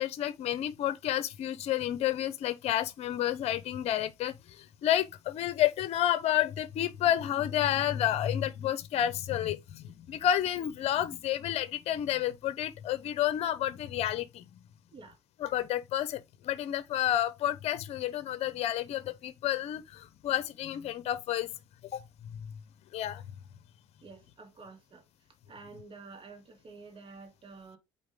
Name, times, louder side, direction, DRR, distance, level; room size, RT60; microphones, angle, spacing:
voice 1, 0.0-14.4 15.4-21.5 21.9-22.0 22.4-22.5 22.9-23.2, left 11 dB, 60° left, 0.8 m, -30 dB
voice 2, 24.0-25.1 25.5-27.8, right 4 dB, 45° right, 2.7 m, -49 dB
8.4 x 4.2 x 3.8 m
supercardioid pair, 80°, 12 cm